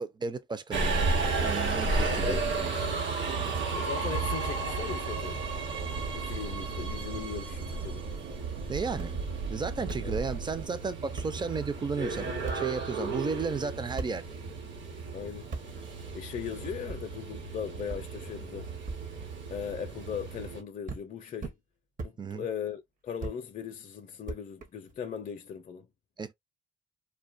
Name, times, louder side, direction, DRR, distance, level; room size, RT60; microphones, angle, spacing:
voice 1, 0.0-2.4 3.3-3.6 8.7-9.2 9.5-14.4 22.2-22.5 26.2-26.3, right 4 dB, 20° right, 0.4 m, -34 dB
Subway metro underground, 0.7-20.6, right 3 dB, 65° right, 1.1 m, -33 dB
voice 2, 2.0-2.7 3.8-5.4 6.1-8.1 10.0-10.2 15.1-15.5 16.1-18.7 19.5-21.5 22.0-25.9, left 8 dB, 40° left, 0.5 m, -38 dB
sound 1, 5.3-10.7, right 4 dB, 80° right, 0.5 m, -40 dB
sound 2, 8.9-9.1 9.8-10.0 10.8-10.9 11.2-11.3 12.5-12.6 14.0-14.1 15.5-15.6 16.9-17.0 17.9-18.0 18.9-19.0 20.1-20.5 20.9-21.0 21.4-21.6 22.0-22.1 23.2-23.4 24.3-24.9, right 3 dB, 45° right, 0.8 m, -37 dB
2.5 x 2.2 x 2.4 m
cardioid pair, 90°, 20 cm